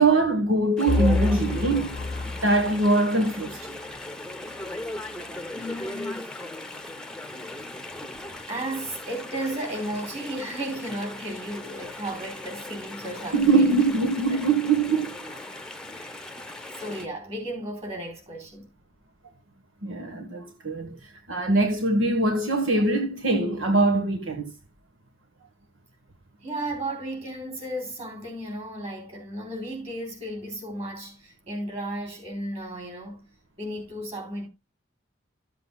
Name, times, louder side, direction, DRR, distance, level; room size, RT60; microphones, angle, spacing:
voice 1, 0.0-2.0 2.4-3.6 13.3-15.2 19.8-21.0 21.3-24.5, right 3 dB, 80° right, 1.4 m, -22 dB
Chatter / Stream, 0.8-17.1, left 2 dB, 5° left, 0.9 m, -38 dB
sound 1, 0.9-2.8, left 3 dB, 50° left, 0.5 m, -27 dB
voice 2, 5.5-6.3 8.5-13.7 14.3-14.4 15.9-16.2 16.8-18.7 26.4-33.3 33.6-34.5, right 1 dB, 35° right, 3.7 m, -34 dB
13.5 x 7.7 x 2.3 m
head